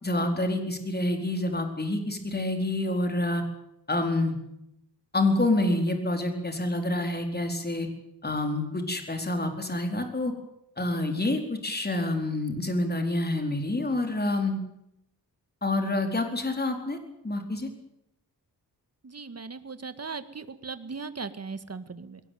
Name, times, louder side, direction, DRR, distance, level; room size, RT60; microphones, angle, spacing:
voice 1, 0.0-3.4 3.9-4.4 5.1-7.9 8.2-10.3 10.8-14.6 15.6-17.0 17.2-17.7, left 2 dB, 25° left, 5 dB, 4.4 m, -27 dB
voice 2, 19.0-22.2, right 4 dB, 40° right, 11 dB, 1.9 m, -38 dB
22.0 x 18.5 x 9.5 m, 0.81 s
wide cardioid pair, 100°, 40 cm